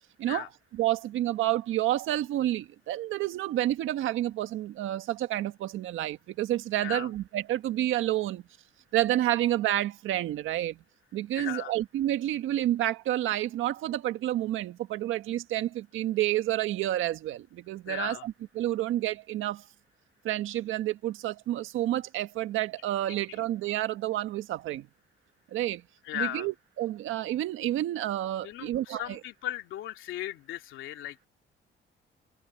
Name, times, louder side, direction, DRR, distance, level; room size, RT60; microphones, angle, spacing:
voice 1, 0.7-8.4 8.9-10.8 11.1-19.6 20.2-24.9 25.5-25.8 26.1-29.2, right 14 dB, 85° right, 1.6 m, -29 dB
voice 2, 11.3-11.7 17.9-18.3 26.0-26.5 28.4-31.3, left 12 dB, 85° left, 2.7 m, -36 dB
cardioid pair, 90°, 20 cm